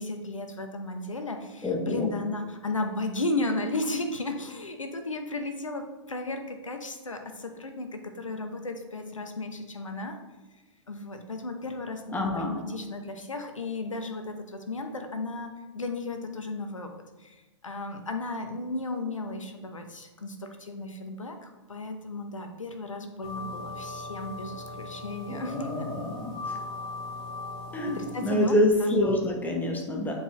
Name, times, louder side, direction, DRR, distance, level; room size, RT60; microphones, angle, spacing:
voice 1, 0.0-10.2 10.9-16.9 17.2-17.4 17.6-25.9 27.9-29.2, left 2 dB, 90° left, 6 dB, 0.8 m, -34 dB
voice 2, 1.6-2.1 12.1-12.5 25.3-26.3 27.7-30.1, left 1 dB, 10° left, 1 dB, 1.1 m, -27 dB
sound 1, 23.2-28.5, left 3 dB, 25° left, 1.9 m, -39 dB
8.0 x 4.6 x 3.1 m, 1.2 s
figure-of-eight pair, 110°, 16 cm